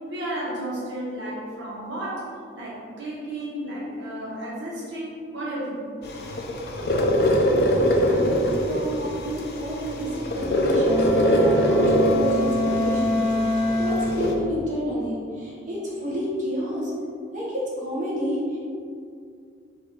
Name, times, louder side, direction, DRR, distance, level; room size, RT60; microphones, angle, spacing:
voice 1, 0.1-2.2 2.5-5.9, right 1 dB, 75° right, -7 dB, 1.3 m, -33 dB
sound 1, 6.0-14.3, equal, 55° left, 0.5 m, -23 dB
voice 2, 7.5-16.9 17.3-18.6, equal, 40° right, -6 dB, 1.1 m, -30 dB
Wind instrument woodwind instrument, 10.8-14.3, equal, 35° left, 0.8 m, -25 dB
4.0 x 2.7 x 4.4 m, 2.3 s
head